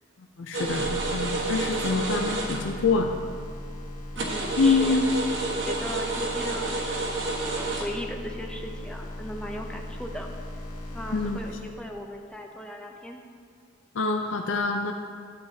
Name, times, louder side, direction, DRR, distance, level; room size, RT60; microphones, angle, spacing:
voice 1, 0.4-3.1 4.6-5.1 11.1-11.4 13.9-14.9, left 4 dB, 85° left, 3 dB, 0.5 m, -25 dB
sound 1, 0.5-2.9 3.2-3.3 3.8-3.9 4.1-7.8, right 2 dB, 85° right, 1.4 m, -30 dB
sound 2, 0.6-12.2, left 1 dB, 45° left, 1.9 m, -38 dB
voice 2, 4.1-5.0 5.5-7.1 7.5-10.3 10.9-13.2, equal, 5° left, 2 dB, 0.6 m, -38 dB
13.0 x 8.1 x 2.8 m, 2.3 s
head